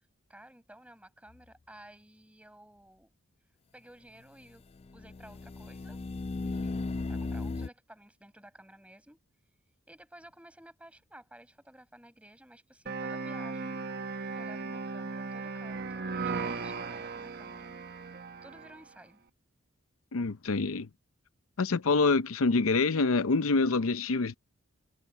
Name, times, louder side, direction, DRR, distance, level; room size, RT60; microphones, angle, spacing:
voice 1, 0.3-3.1 3.7-4.7 4.9-6.0 6.4-6.8 7.1-9.2 9.9-13.8 14.4-17.7 18.4-19.2, right 1 dB, 5° right, 5.2 m, -54 dB
sound 1, 1.3-1.4 4.8-7.7, left 3 dB, 30° left, 0.3 m, -36 dB
sound 2, 12.9-18.8, right 4 dB, 45° right, 1.1 m, -37 dB
voice 2, 20.1-20.9 21.6-24.3, left 3 dB, 75° left, 0.7 m, -26 dB
head